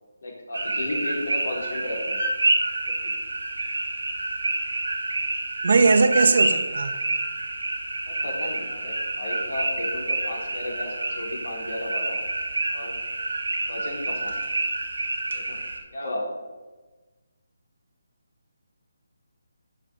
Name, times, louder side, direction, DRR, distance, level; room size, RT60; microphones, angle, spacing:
voice 1, 0.2-2.2 3.0-3.1 8.1-12.2 12.7-13.0 13.7-14.4 15.3-15.6 15.9-16.3, left 1 dB, 70° left, -2 dB, 4.0 m, -33 dB
sound 1, 0.5-15.8, right 2 dB, 80° right, 2.0 m, -28 dB
voice 2, 5.6-7.0, right 4 dB, 55° right, 9 dB, 1.1 m, -19 dB
11.5 x 6.8 x 5.4 m, 1.2 s
figure-of-eight pair, 155°, 0 cm